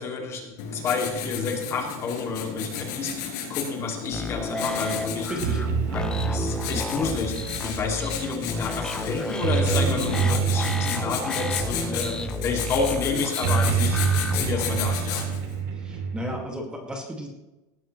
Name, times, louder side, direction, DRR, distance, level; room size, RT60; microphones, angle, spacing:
voice 1, 0.0-5.3 5.9-14.0 14.3-15.3, left 4 dB, 25° left, 2 dB, 2.4 m, -30 dB
Writing, 0.6-15.5, left 7 dB, 65° left, 5.8 m, -34 dB
sound 1, 4.1-14.9, left 3 dB, 10° left, 0.7 m, -33 dB
sound 2, 4.6-16.4, right 5 dB, 70° right, 2.6 m, -28 dB
voice 2, 5.3-5.6 15.8-17.3, equal, 10° right, 1 dB, 2.0 m, -34 dB
19.0 x 13.0 x 3.2 m, 1.0 s
supercardioid pair, 170°, 10 cm